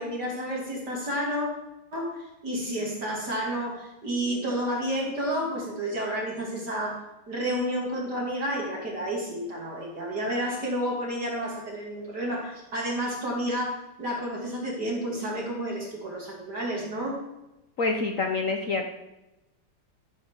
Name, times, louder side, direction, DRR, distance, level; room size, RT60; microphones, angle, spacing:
voice 1, 0.0-1.5 1.9-17.2, equal, 50° right, -3 dB, 2.8 m, -30 dB
voice 2, 17.8-18.9, left 3 dB, 55° left, 4 dB, 0.9 m, -27 dB
13.5 x 5.9 x 7.1 m, 0.96 s
omnidirectional pair, 2.4 m